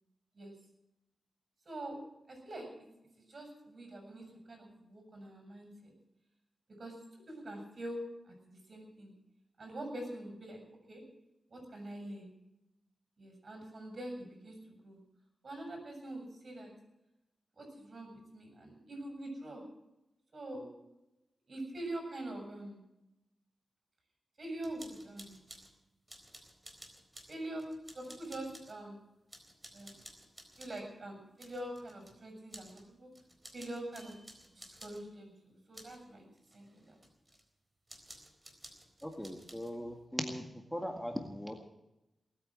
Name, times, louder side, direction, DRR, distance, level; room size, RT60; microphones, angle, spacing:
voice 1, 1.7-2.0 2.3-2.7 3.2-5.9 6.8-6.9 7.3-8.0 8.3-9.1 9.6-10.6 10.9-11.0 11.5-12.3 13.2-15.0 15.4-16.7 17.6-19.6 20.3-20.7 21.5-22.8 24.4-25.4 27.3-27.6 27.9-29.0 29.7-30.0 30.6-33.1 33.5-34.2 34.5-36.2 36.5-36.9, right 1 dB, 50° right, 3 dB, 7.3 m, -44 dB
sound 1, 24.6-25.7 26.1-28.8 29.3-30.9 31.4-32.2 32.5-32.9 33.1-35.0 35.7-36.0 36.4-37.4 37.9-39.8, right 1 dB, 20° right, 4.1 m, -54 dB
voice 2, 39.0-41.7, equal, 5° left, 3 dB, 1.9 m, -39 dB
19.5 x 9.1 x 7.6 m, 0.93 s
cardioid pair, 70°, 0 cm